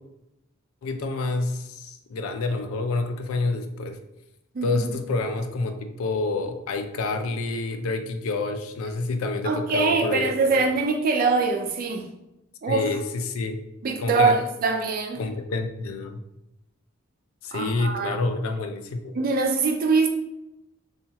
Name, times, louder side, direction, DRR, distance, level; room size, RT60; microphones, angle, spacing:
voice 1, 0.8-4.0 4.6-10.7 12.7-13.6 14.0-14.3 15.2-16.2 17.4-19.1, left 3 dB, 75° left, 6 dB, 0.4 m, -28 dB
voice 2, 4.5-5.0 9.4-12.1 12.6-12.8 13.8-15.2 17.5-18.2 19.1-20.1, right 4 dB, 40° right, 3 dB, 0.3 m, -23 dB
2.9 x 2.3 x 2.7 m, 0.90 s
head